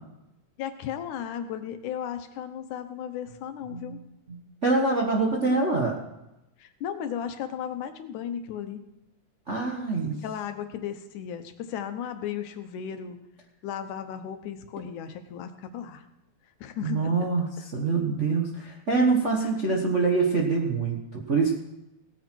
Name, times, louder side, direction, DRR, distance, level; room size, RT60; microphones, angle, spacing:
voice 1, 0.6-4.0 6.6-8.8 10.2-13.2 13.6-16.0 16.6-17.3 19.4-19.8, left 9 dB, 85° left, 9 dB, 2.5 m, -35 dB
voice 2, 4.6-6.0 9.5-10.2 16.8-21.5, right 4 dB, 55° right, -2 dB, 0.8 m, -25 dB
17.5 x 9.1 x 4.5 m, 0.92 s
omnidirectional pair, 3.4 m